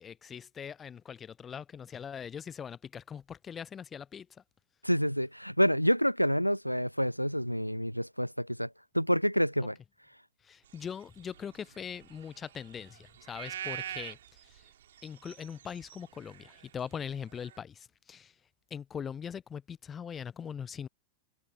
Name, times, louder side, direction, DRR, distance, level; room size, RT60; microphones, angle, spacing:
voice 1, 0.0-4.3 10.5-14.2 15.0-18.3 18.7-20.9, left 7 dB, 20° left, 0.7 m, -41 dB
voice 2, 4.8-8.7 8.9-9.8, equal, 90° left, 0.6 m, -28 dB
sound 1, 10.8-17.6, right 11 dB, 60° right, 4.2 m, -45 dB
figure-of-eight pair, 90°, 0 cm